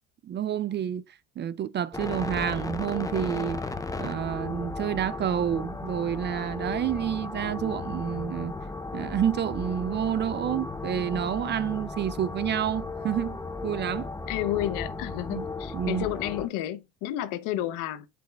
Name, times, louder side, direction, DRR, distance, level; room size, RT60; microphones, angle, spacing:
voice 1, 0.2-1.0 1.4-3.6 4.0-8.6 8.9-14.1 15.3-15.5 15.7-16.1, right 10 dB, 35° right, 0.4 m, -29 dB
sound 1, 1.9-16.5, left 3 dB, 10° left, 0.7 m, -35 dB
voice 2, 14.3-18.1, left 13 dB, 70° left, 0.9 m, -31 dB
7.8 x 5.1 x 2.3 m
supercardioid pair, 80°, 33 cm